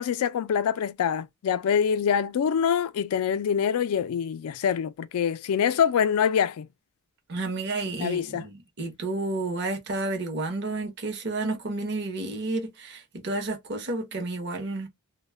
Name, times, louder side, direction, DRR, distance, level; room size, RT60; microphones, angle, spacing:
voice 1, 0.0-6.7 8.0-8.4, left 7 dB, 75° left, 0.3 m, -25 dB
voice 2, 7.3-14.9, right 2 dB, 50° right, 0.8 m, -31 dB
2.2 x 2.1 x 3.2 m
head